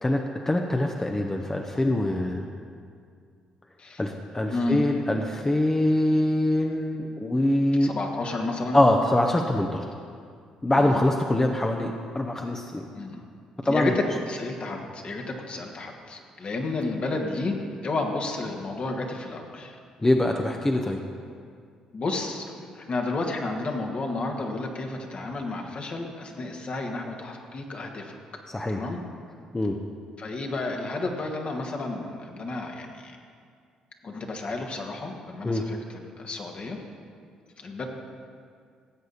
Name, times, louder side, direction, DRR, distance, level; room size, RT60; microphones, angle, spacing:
voice 1, 0.0-2.5 4.0-7.9 8.7-9.9 10.6-12.9 13.6-14.0 20.0-21.0 28.5-28.8 29.5-29.8 35.4-35.6, left 1 dB, 20° left, 2 dB, 0.9 m, -24 dB
voice 2, 4.5-4.9 7.8-8.8 10.7-11.0 12.9-13.2 13.6-17.6 17.8-19.7 21.9-28.1 28.7-29.0 30.2-33.2 34.0-36.8 37.6-37.9, left 2 dB, 45° left, 2 dB, 1.7 m, -31 dB
17.0 x 8.0 x 4.2 m, 2.2 s
hypercardioid pair, 45°, 3 cm